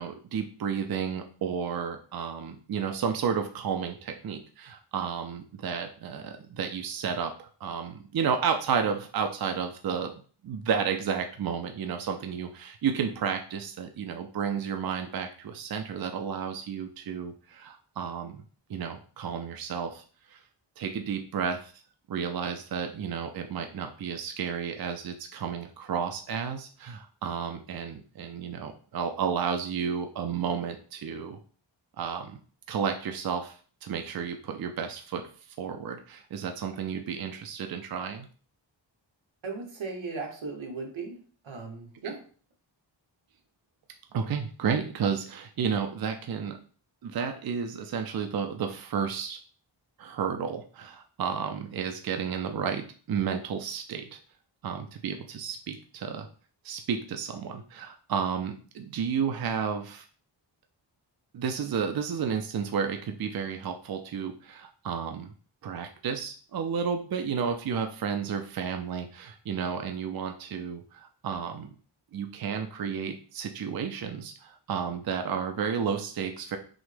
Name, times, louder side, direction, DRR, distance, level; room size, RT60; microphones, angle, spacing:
voice 1, 0.0-10.1 10.4-18.4 18.7-20.4 20.8-21.7 22.1-31.4 32.0-32.4 32.7-38.3 44.1-46.6 47.0-49.4 50.0-54.2 54.6-56.3 56.6-60.1 61.3-65.3 65.6-71.7 72.1-76.6, right 7 dB, 55° right, 5 dB, 0.5 m, -32 dB
voice 2, 39.4-41.2 41.4-42.2, right 4 dB, 85° right, 1 dB, 1.2 m, -37 dB
6.1 x 2.1 x 3.3 m, 0.41 s
wide cardioid pair, 135°, 46 cm